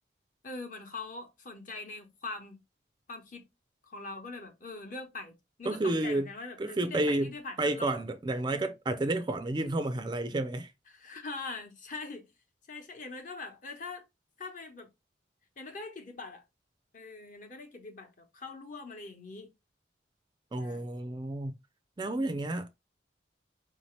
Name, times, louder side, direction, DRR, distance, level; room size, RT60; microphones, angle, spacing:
voice 1, 0.4-2.6 3.1-3.5 3.8-5.3 5.6-8.0 10.9-12.3 12.7-14.0 14.4-14.9 15.6-16.4 16.9-19.5 20.6-20.8, left 3 dB, 45° left, 1.0 m, -42 dB
voice 2, 5.6-6.3 6.6-7.3 7.6-10.7 20.5-21.5 22.0-22.7, right 2 dB, 25° right, 0.4 m, -30 dB
4.8 x 2.8 x 3.1 m
head